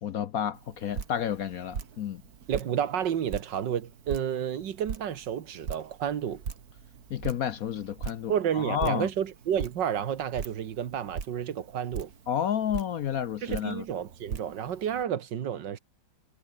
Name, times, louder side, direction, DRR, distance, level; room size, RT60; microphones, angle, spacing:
voice 1, 0.0-2.2 7.1-9.1 12.3-13.8, left 9 dB, 60° left, 1.0 m, -31 dB
Drip, 0.5-15.0, right 7 dB, 55° right, 2.1 m, -41 dB
voice 2, 2.5-6.4 8.3-12.1 13.4-15.8, right 9 dB, 70° right, 1.9 m, -31 dB
omnidirectional pair, 2.0 m